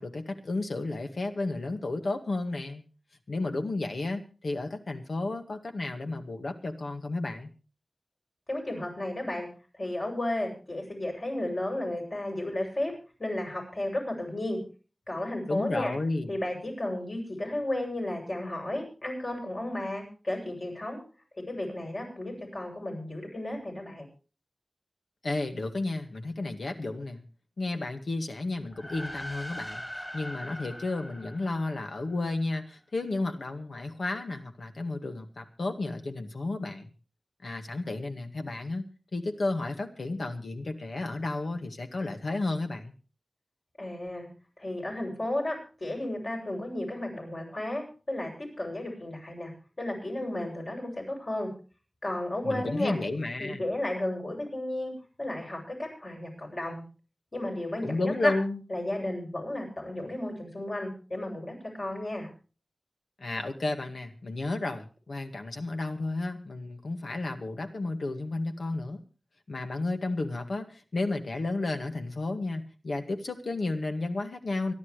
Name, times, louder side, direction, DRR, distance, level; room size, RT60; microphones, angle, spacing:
voice 1, 0.0-2.8 3.3-7.5 15.5-16.3 25.2-27.2 27.6-36.9 37.4-42.9 52.4-53.6 57.8-58.6 63.2-69.0 69.5-74.7, left 2 dB, 90° left, 5 dB, 1.9 m, -32 dB
voice 2, 8.5-9.5 9.7-12.9 13.2-14.6 15.1-15.9 16.3-21.0 21.5-24.1 43.8-44.3 44.6-49.5 49.8-51.5 52.0-53.0 53.4-56.8 57.3-58.3 58.7-62.3, left 1 dB, 50° left, 0 dB, 8.0 m, -33 dB
sound 1, 28.6-32.3, equal, 20° left, 2.5 m, -41 dB
26.0 x 11.5 x 3.3 m, 0.37 s
wide cardioid pair, 75°, 0 cm